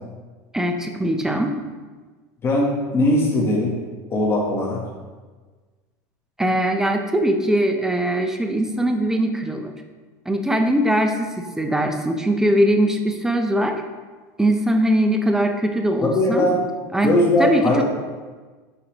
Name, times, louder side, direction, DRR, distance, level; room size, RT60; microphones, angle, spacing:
voice 1, 0.5-1.5 6.4-9.7 10.3-13.8 14.4-16.5 16.9-17.1 17.4-17.8, right 1 dB, 5° right, 5 dB, 0.6 m, -21 dB
voice 2, 2.4-3.8 4.1-4.8 16.0-16.6 17.0-17.8, left 1 dB, 25° left, -2 dB, 1.3 m, -19 dB
8.3 x 5.0 x 3.0 m, 1.4 s
supercardioid pair, 125°, 9 cm